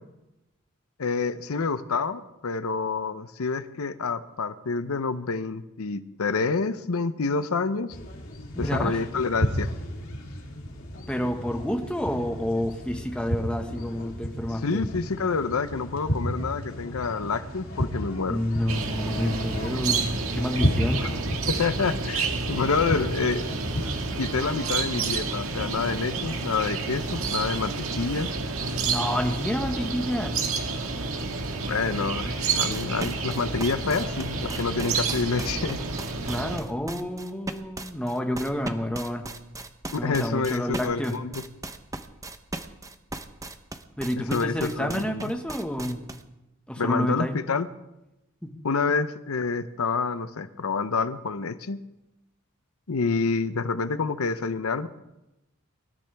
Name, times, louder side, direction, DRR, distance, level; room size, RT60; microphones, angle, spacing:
voice 1, 1.0-8.0 8.6-9.7 14.6-18.4 21.0-21.1 21.5-23.4 24.2-28.3 31.6-35.8 39.9-41.3 44.3-45.2 46.8-47.7 48.6-51.8 52.9-54.9, left 4 dB, 85° left, 12 dB, 0.7 m, -28 dB
sound 1, 7.9-24.5, equal, 70° left, 3.4 m, -33 dB
voice 2, 8.5-9.0 11.1-14.8 18.3-21.1 28.7-30.4 36.2-39.2 39.9-41.1 44.0-46.0 46.7-47.4 48.4-48.5, equal, 5° left, 3 dB, 1.5 m, -29 dB
sound 2, 18.7-36.6, right 4 dB, 75° right, 1.8 m, -30 dB
sound 3, 32.7-46.2, right 2 dB, 15° right, 0.8 m, -37 dB
26.0 x 13.5 x 3.5 m, 0.95 s
head